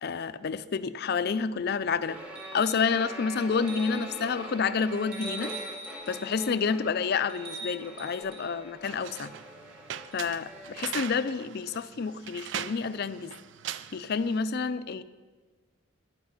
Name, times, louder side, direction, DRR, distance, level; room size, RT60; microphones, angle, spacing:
voice 1, 0.0-2.2 2.5-5.5 6.1-9.3 10.1-13.3 13.9-15.0, left 5 dB, 50° left, 14 dB, 0.4 m, -29 dB
sound 1, 2.0-10.9, equal, 5° right, 1.1 m, -44 dB
sound 2, 2.4-2.9 3.6-4.2 5.1-6.5 7.3-8.5 10.1-10.2, right 1 dB, 30° right, 4.3 m, -42 dB
sound 3, 8.8-14.4, right 10 dB, 60° right, 0.4 m, -40 dB
10.5 x 9.5 x 5.6 m, 1.4 s
head